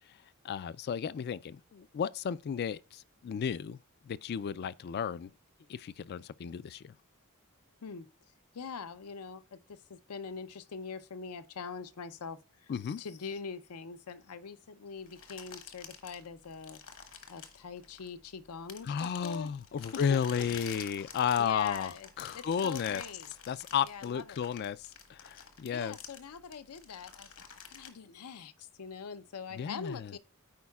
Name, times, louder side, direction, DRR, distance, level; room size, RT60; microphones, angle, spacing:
voice 1, 0.4-3.8 4.0-5.3 5.7-6.9 12.7-13.0 18.9-23.0 23.5-26.0 29.5-30.1, left 7 dB, 45° left, 0.3 m, -33 dB
voice 2, 8.5-16.8 17.3-19.0 19.2-19.5 20.1-20.2 21.0-21.1 21.4-23.3 23.8-24.4 25.7-27.3 27.7-30.2, left 5 dB, 85° left, 0.6 m, -43 dB
sound 1, 15.1-18.3 18.7-27.9, left 7 dB, 65° left, 1.3 m, -48 dB
14.0 x 4.7 x 2.3 m
head